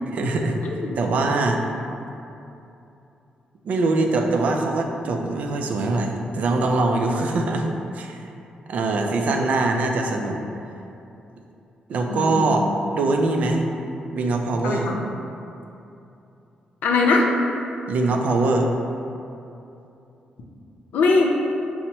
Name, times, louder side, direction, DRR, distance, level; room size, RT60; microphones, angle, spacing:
voice 1, 0.1-0.6 1.0-1.6 3.6-7.7 7.9-8.3 8.7-10.4 11.9-12.7 12.9-13.6 14.1-14.9 17.9-18.7, right 2 dB, 60° right, 3 dB, 0.4 m, -22 dB
voice 2, 12.1-12.6 14.6-15.0 16.8-17.3 20.9-21.3, left 3 dB, 85° left, 0 dB, 0.5 m, -21 dB
5.4 x 2.0 x 2.9 m, 2.8 s
cardioid pair, 120°, 3 cm